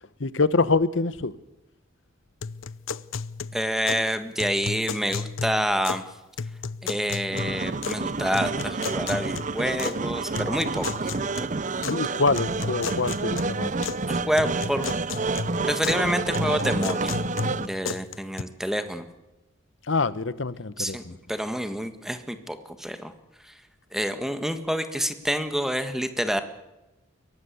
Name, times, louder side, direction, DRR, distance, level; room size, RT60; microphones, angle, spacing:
voice 1, 0.2-1.3 11.7-13.7 19.9-21.2, left 3 dB, 70° left, 1.0 m, -25 dB
sound 1, 2.4-4.1 4.4-6.1 6.4-8.1 8.3-10.0 10.3-12.0 12.3-14.0 14.3-16.0 16.3-18.4, left 5 dB, 85° left, 0.7 m, -34 dB
voice 2, 3.5-6.0 6.8-10.9 11.1-11.5 14.1-14.9 15.6-17.1 17.6-19.0 20.8-21.0 21.3-23.1 23.4-23.5 23.9-26.4, equal, ahead, 1.6 m, -28 dB
sound 2, 7.3-17.7, right 3 dB, 40° right, 0.8 m, -29 dB
23.0 x 18.0 x 8.3 m
head